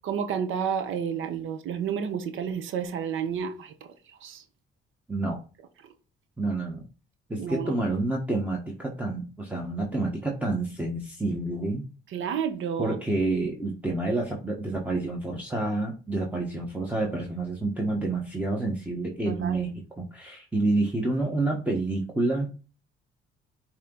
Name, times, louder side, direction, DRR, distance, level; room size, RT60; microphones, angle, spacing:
voice 1, 0.0-3.7 4.1-4.4 5.8-5.9 7.4-7.8 12.1-13.0 19.3-19.7, right 7 dB, 80° right, 0.9 m, -31 dB
voice 2, 6.4-6.8 7.3-11.8 12.8-19.7 20.0-22.5, right 2 dB, 5° right, 1.4 m, -28 dB
8.4 x 3.0 x 3.9 m
cardioid pair, 90°, 20 cm